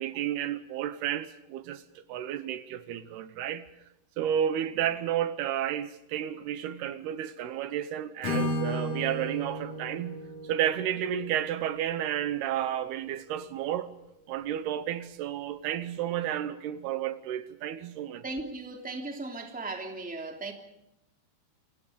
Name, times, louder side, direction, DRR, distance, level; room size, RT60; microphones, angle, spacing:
voice 1, 0.0-3.7 4.2-13.9 14.3-18.2, right 10 dB, 80° right, 3.0 m, -32 dB
Acoustic guitar / Strum, 8.2-12.2, left 1 dB, 50° left, 6.8 m, -34 dB
voice 2, 18.2-20.5, right 2 dB, ahead, 2.4 m, -37 dB
28.5 x 24.0 x 5.2 m
omnidirectional pair, 4.7 m